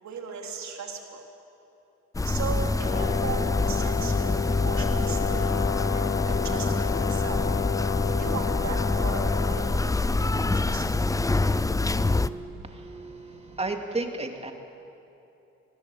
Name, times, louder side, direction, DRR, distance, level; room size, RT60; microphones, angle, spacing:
voice 1, 0.0-1.2 2.2-5.5 5.9-6.7 7.1-7.4 8.0-10.9, right 6 dB, 65° right, 2 dB, 3.6 m, -37 dB
sound 1, 2.1-12.3, left 3 dB, 10° left, 0.5 m, -26 dB
Brass instrument, 2.8-9.8, left 9 dB, 40° left, 0.9 m, -31 dB
sound 2, 6.0-13.7, right 3 dB, 90° right, 4.2 m, -44 dB
voice 2, 12.6-14.5, right 2 dB, 20° right, 5 dB, 2.5 m, -33 dB
23.0 x 19.0 x 8.5 m, 2.9 s
cardioid pair, 90°, 30 cm